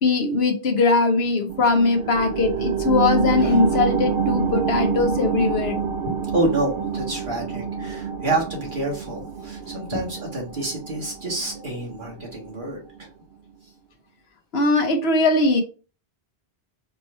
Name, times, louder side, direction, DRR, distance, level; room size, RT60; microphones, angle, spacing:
voice 1, 0.0-5.8 6.1-6.2 9.9-10.0 14.5-15.6, left 3 dB, 75° left, 1.2 m, -20 dB
sound 1, 1.5-12.6 13.0-13.1, right 6 dB, 75° right, 0.8 m, -27 dB
voice 2, 6.3-13.1, right 2 dB, 50° right, 1.9 m, -28 dB
4.4 x 2.9 x 3.3 m
omnidirectional pair, 1.1 m